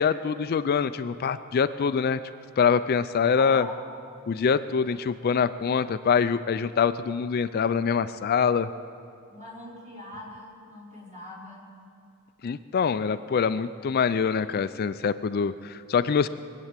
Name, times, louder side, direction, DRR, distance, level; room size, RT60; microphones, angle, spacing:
voice 1, 0.0-2.2 2.6-3.7 4.3-8.7 12.4-16.3, left 6 dB, 45° left, 12 dB, 0.4 m, -24 dB
voice 2, 3.3-3.8 9.3-11.7, left 1 dB, 35° right, -5 dB, 4.4 m, -42 dB
22.5 x 8.3 x 7.5 m, 2.5 s
head